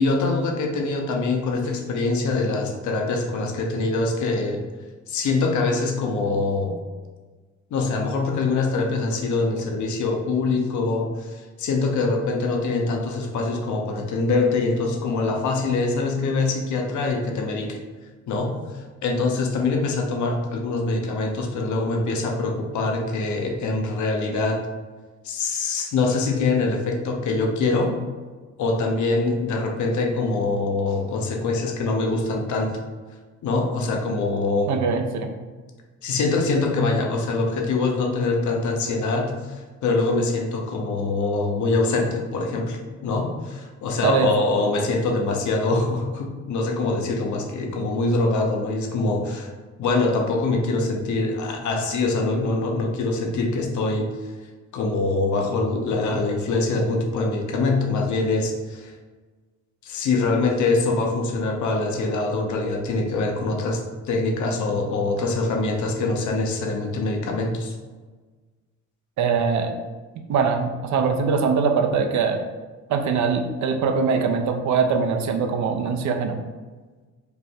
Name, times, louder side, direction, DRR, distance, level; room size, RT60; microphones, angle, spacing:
voice 1, 0.0-4.6 5.1-6.8 7.7-17.8 18.3-18.6 19.0-24.6 25.2-28.0 28.6-32.8 33.4-34.8 36.0-49.5 49.8-54.1 54.7-58.9 59.8-63.8 64.1-67.8, left 3 dB, 75° left, 2 dB, 0.9 m, -24 dB
voice 2, 34.7-35.3 44.0-44.3 69.2-69.7 70.3-72.4 72.9-76.4, right 5 dB, 70° right, 5 dB, 0.7 m, -22 dB
5.0 x 2.2 x 4.5 m, 1.3 s
cardioid pair, 90°, 30 cm